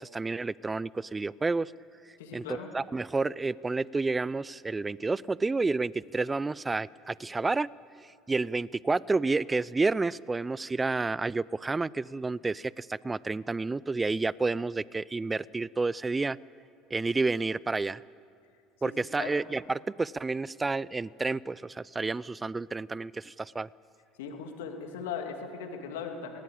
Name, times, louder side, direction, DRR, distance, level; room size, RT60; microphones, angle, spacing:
voice 1, 0.0-1.7 2.3-7.7 8.3-16.4 16.9-18.0 18.8-23.7, right 3 dB, 20° right, 22 dB, 0.5 m, -30 dB
voice 2, 2.2-2.7 18.8-18.9 19.2-19.3 24.2-26.4, left 6 dB, 75° left, 4 dB, 2.4 m, -38 dB
19.5 x 18.5 x 8.7 m, 2.3 s
hypercardioid pair, 65°, 0 cm